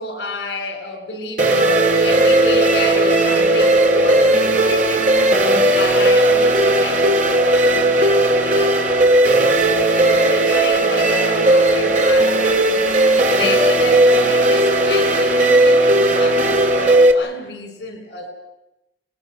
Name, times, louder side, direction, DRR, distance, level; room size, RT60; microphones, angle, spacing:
voice 1, 0.0-5.1 5.7-9.4 9.9-12.8 13.3-18.3, left 3 dB, 80° left, 6 dB, 5.6 m, -30 dB
sound 1, 1.4-17.1, right 1 dB, 45° right, 2.2 m, -15 dB
29.5 x 19.5 x 6.4 m, 0.92 s
head